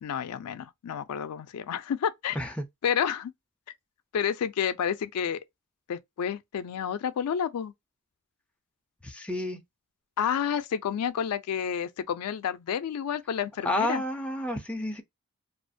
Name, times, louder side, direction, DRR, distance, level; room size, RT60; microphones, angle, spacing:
voice 1, 0.0-2.4 2.8-3.3 4.1-5.4 5.9-7.7 10.2-14.0, left 8 dB, 85° left, 0.4 m, -30 dB
voice 2, 9.0-9.6 13.6-15.0, left 1 dB, 5° left, 0.4 m, -30 dB
2.4 x 2.1 x 2.6 m
head